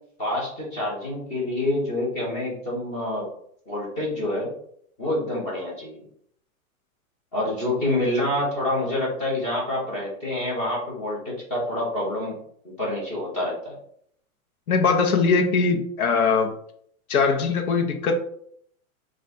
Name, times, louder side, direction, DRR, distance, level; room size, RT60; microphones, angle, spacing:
voice 1, 0.2-3.3 3.7-4.5 5.0-6.0 7.3-12.3 12.6-13.8, left 1 dB, 15° left, -5 dB, 1.3 m, -27 dB
voice 2, 14.7-16.5 17.1-18.1, left 4 dB, 85° left, 5 dB, 0.9 m, -21 dB
4.3 x 2.5 x 4.0 m, 0.67 s
supercardioid pair, 170°, 42 cm